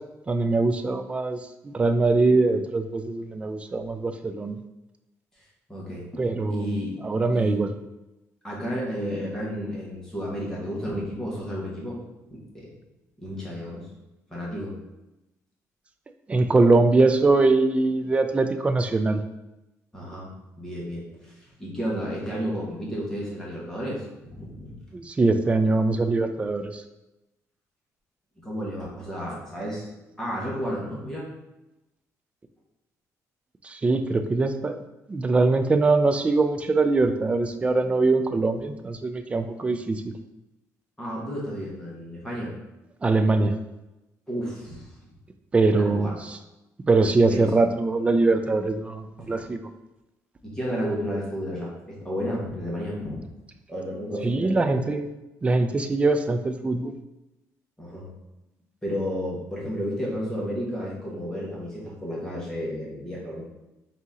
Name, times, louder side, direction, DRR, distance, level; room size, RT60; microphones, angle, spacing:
voice 1, 0.3-4.6 6.2-6.7 7.0-7.7 16.3-19.2 24.9-26.8 33.6-34.8 35.1-40.0 43.0-43.5 45.5-46.4 46.9-49.6 54.2-55.1 55.4-56.9, right 3 dB, 20° right, 8 dB, 0.3 m, -22 dB
voice 2, 5.7-7.0 7.3-7.6 8.4-12.0 12.3-12.7 13.2-13.9 14.3-14.8 19.9-24.0 24.3-24.8 28.4-29.9 30.2-31.3 41.0-42.5 44.3-44.9 45.7-46.1 47.3-47.5 49.2-49.3 50.4-53.2 53.7-54.9 57.8-58.1 58.8-63.4, equal, 10° left, -5 dB, 1.3 m, -32 dB
4.0 x 2.8 x 3.7 m, 0.97 s
cardioid pair, 135°, 6 cm